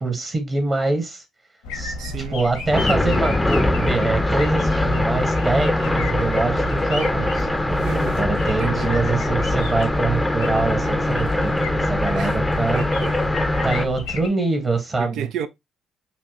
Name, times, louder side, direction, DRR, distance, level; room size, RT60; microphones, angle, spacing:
voice 1, 0.0-1.2 1.7-1.9 2.3-7.5 8.1-12.8 13.6-15.3, right 3 dB, 35° right, 1.4 m, -24 dB
sound 1, 1.6-14.3, left 2 dB, 85° left, 1.1 m, -33 dB
voice 2, 2.0-2.4 7.8-8.2 8.6-8.9 12.1-12.4 12.7-13.2 15.0-15.5, right 9 dB, 70° right, 0.4 m, -32 dB
sound 2, 2.7-13.9, left 1 dB, 10° left, 0.6 m, -22 dB
5.8 x 2.2 x 3.0 m
hypercardioid pair, 50°, 0 cm